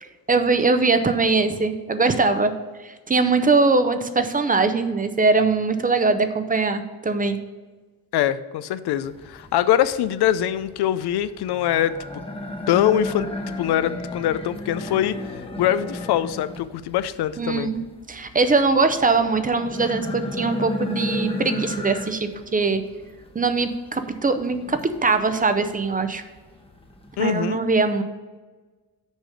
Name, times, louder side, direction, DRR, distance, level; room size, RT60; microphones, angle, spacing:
voice 1, 0.3-2.5 2.8-7.4 17.4-17.8 18.1-22.8 23.3-26.2 27.2-28.0, right 3 dB, 20° right, 9 dB, 0.5 m, -21 dB
voice 2, 8.1-11.9 12.7-13.3 13.6-17.7 27.2-27.6, left 11 dB, 85° left, 14 dB, 0.5 m, -23 dB
sound 1, 9.0-27.2, left 1 dB, 15° left, 0.9 m, -34 dB
6.4 x 5.0 x 6.6 m, 1.3 s
cardioid pair, 125°, 38 cm